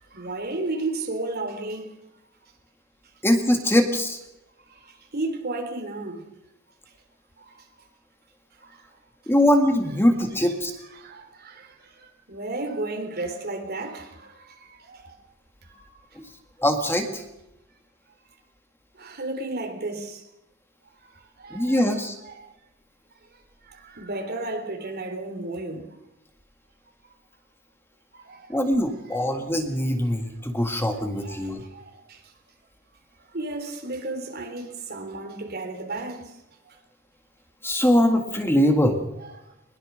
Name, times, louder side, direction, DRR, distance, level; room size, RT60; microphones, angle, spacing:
voice 1, 0.0-1.9 4.7-6.3 7.4-7.6 8.6-8.8 11.0-15.2 15.7-15.9 19.0-20.2 21.4-22.5 23.6-25.9 28.1-28.7 29.1-29.2 31.2-32.2 33.3-36.3 36.7-36.8 39.2-39.3, right 2 dB, 50° right, 3.8 m, -34 dB
voice 2, 3.2-4.2 9.3-10.7 16.2-16.3 16.6-17.2 21.5-22.1 28.5-31.6 37.6-39.0, left 1 dB, 10° left, 1.9 m, -22 dB
21.5 x 21.0 x 6.4 m
head